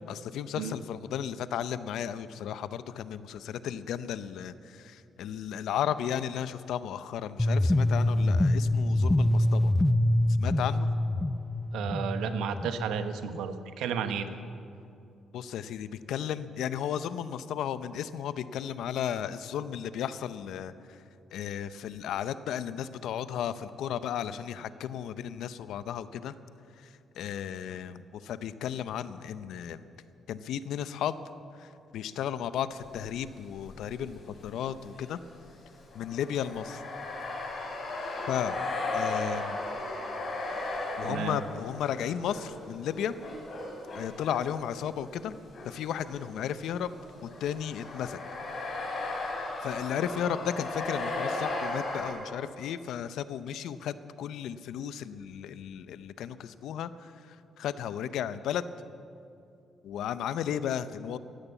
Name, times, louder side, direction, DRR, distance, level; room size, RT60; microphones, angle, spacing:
voice 1, 0.1-9.7 10.4-10.9 15.3-21.0 21.3-26.3 26.8-26.9 27.2-29.9 30.3-31.2 31.6-35.2 35.9-36.8 38.3-38.5 38.9-39.6 41.0-43.2 43.9-45.3 45.6-46.9 47.2-48.2 49.6-58.6 59.8-61.2, left 9 dB, 80° left, 14 dB, 0.6 m, -34 dB
sound 1, 7.4-13.4, left 1 dB, 10° left, 0.5 m, -25 dB
voice 2, 11.7-14.3 41.0-41.4, right 7 dB, 85° right, 9 dB, 1.0 m, -32 dB
sound 2, 32.8-33.1 33.5-45.7 46.0-52.1, left 2 dB, 55° left, 4.7 m, -36 dB
14.5 x 11.0 x 8.4 m, 2.6 s
cardioid pair, 90°, 0 cm